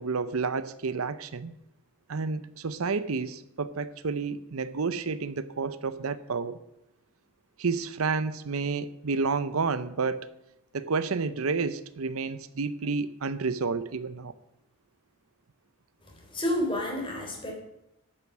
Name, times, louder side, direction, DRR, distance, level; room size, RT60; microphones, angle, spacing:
voice 1, 0.0-1.6 2.1-6.6 7.6-10.3 10.7-14.3, right 4 dB, 80° right, 0.7 m, -30 dB
voice 2, 16.3-17.5, left 1 dB, 25° left, 3.7 m, -29 dB
12.5 x 8.9 x 6.0 m
head